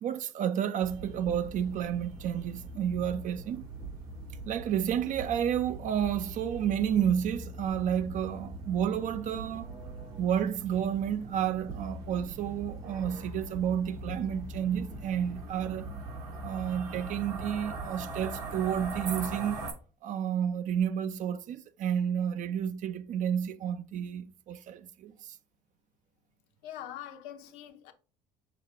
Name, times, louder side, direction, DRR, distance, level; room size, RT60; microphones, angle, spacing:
voice 1, 0.0-3.6 4.5-9.7 10.2-15.9 16.4-19.6 20.0-25.1, right 9 dB, 45° right, 0.5 m, -31 dB
sound 1, 0.8-19.7, right 2 dB, 65° right, 1.5 m, -41 dB
voice 2, 26.6-27.9, left 11 dB, 70° left, 0.7 m, -43 dB
5.8 x 2.3 x 3.4 m
hypercardioid pair, 65°, 17 cm